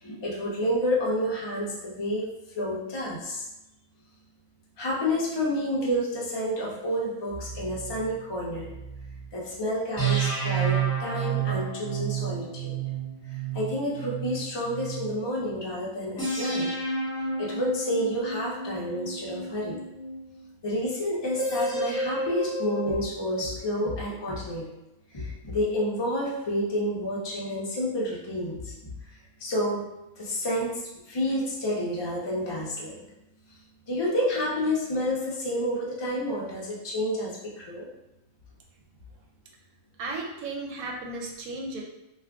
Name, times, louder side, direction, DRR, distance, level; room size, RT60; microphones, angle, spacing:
voice 1, 0.0-2.3 2.6-3.5 4.8-8.7 9.3-12.8 13.3-16.7 17.4-19.8 20.6-24.7 25.1-28.9 29.4-29.8 30.2-33.0 33.9-37.9, equal, 35° left, -4 dB, 0.4 m, -29 dB
sound 1, 7.3-9.3 10.0-15.2 16.2-20.4 21.4-22.9, right 5 dB, 15° left, 1.3 m, -31 dB
voice 2, 40.0-41.8, right 2 dB, 80° right, 0 dB, 1.0 m, -34 dB
2.5 x 2.4 x 3.4 m, 0.91 s
omnidirectional pair, 1.5 m